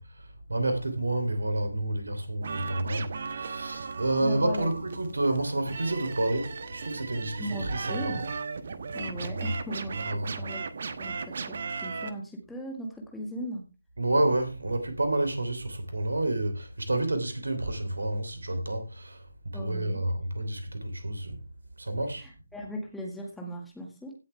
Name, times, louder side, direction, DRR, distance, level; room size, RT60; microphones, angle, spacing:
voice 1, 0.0-8.2 10.0-10.4 14.0-19.3 19.5-21.4 21.8-22.3, right 1 dB, 65° right, 3.1 m, -29 dB
sound 1, 2.4-12.1, right 5 dB, 45° right, 1.2 m, -37 dB
voice 2, 4.2-4.7 7.4-8.3 8.9-10.7 11.0-13.6 19.5-20.0 22.2-24.1, equal, 5° left, 1.9 m, -38 dB
16.5 x 7.7 x 3.4 m
figure-of-eight pair, 150°, 0 cm